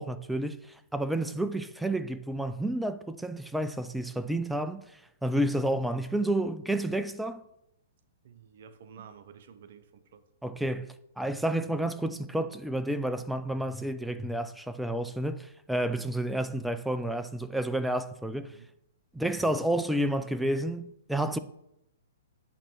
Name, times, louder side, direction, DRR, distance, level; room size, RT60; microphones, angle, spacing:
voice 1, 0.0-7.4 10.4-10.9 11.2-18.6 19.1-21.4, right 1 dB, ahead, 0.4 m, -30 dB
voice 2, 8.2-10.2 18.4-18.7, right 7 dB, 60° right, 0.6 m, -51 dB
8.7 x 3.0 x 6.1 m
hypercardioid pair, 120°, 0 cm